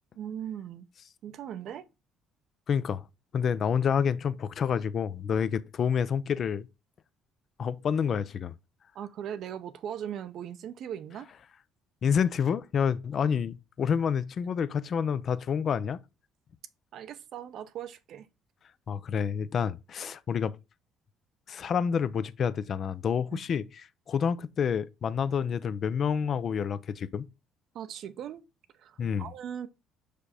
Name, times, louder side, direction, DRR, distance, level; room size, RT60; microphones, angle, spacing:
voice 1, 0.2-0.9 1.2-1.9 8.9-11.3 16.9-18.3 23.3-23.4 27.7-28.4 28.7-29.7, right 9 dB, 65° right, 0.7 m, -39 dB
voice 2, 2.7-3.0 3.3-6.7 7.6-8.5 12.0-16.0 18.9-20.5 21.5-23.6 24.1-27.3 29.0-29.3, left 7 dB, 50° left, 0.5 m, -28 dB
5.0 x 4.9 x 4.2 m
supercardioid pair, 85°, 0 cm